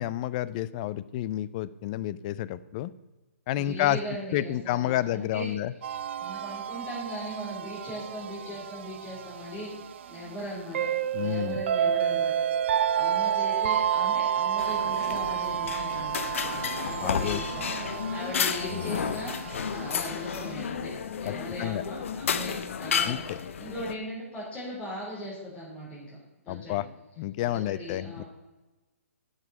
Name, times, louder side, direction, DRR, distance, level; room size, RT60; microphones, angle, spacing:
voice 1, 0.0-2.9 3.5-4.0 4.3-5.7 11.1-11.6 17.0-17.4 21.2-21.8 23.0-23.4 26.5-26.9 27.2-28.2, left 13 dB, 30° left, 17 dB, 0.4 m, -30 dB
voice 2, 3.5-5.5 6.2-10.9 11.1-12.4 12.7-16.2 16.8-20.9 21.2-26.2 26.4-26.8 27.4-28.3, equal, 15° left, -7 dB, 4.0 m, -39 dB
sound 1, 5.8-20.5, right 9 dB, 55° right, 0.4 m, -30 dB
sound 2, 14.6-23.9, left 7 dB, 60° left, 0.7 m, -32 dB
10.5 x 6.5 x 5.4 m, 1.1 s
hypercardioid pair, 145°, 8 cm